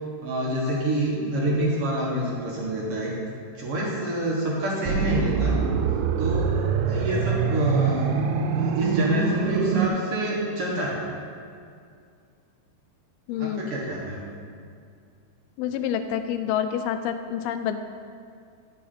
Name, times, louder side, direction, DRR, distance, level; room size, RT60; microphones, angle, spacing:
voice 1, 0.2-3.1 3.5-5.6 6.2-6.5 6.9-8.1 8.5-11.0 13.4-14.2, right 1 dB, 60° right, -4 dB, 1.6 m, -27 dB
sound 1, 4.9-9.9, right 5 dB, 80° right, 2.6 m, -24 dB
voice 2, 13.3-13.7 15.6-17.8, left 9 dB, 80° left, 8 dB, 2.4 m, -28 dB
12.0 x 8.3 x 4.3 m, 2.3 s
omnidirectional pair, 4.7 m